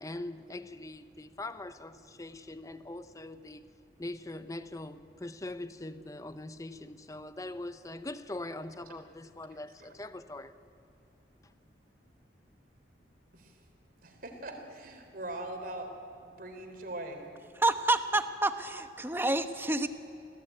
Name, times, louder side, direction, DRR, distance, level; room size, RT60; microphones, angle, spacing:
voice 1, 0.0-3.6 4.0-10.5, left 2 dB, 20° left, 0.8 m, -42 dB
voice 2, 14.0-15.9 16.2-17.3, right 1 dB, 50° right, 3.7 m, -41 dB
voice 3, 17.6-19.9, right 2 dB, 10° right, 1.1 m, -28 dB
27.0 x 18.0 x 9.2 m
head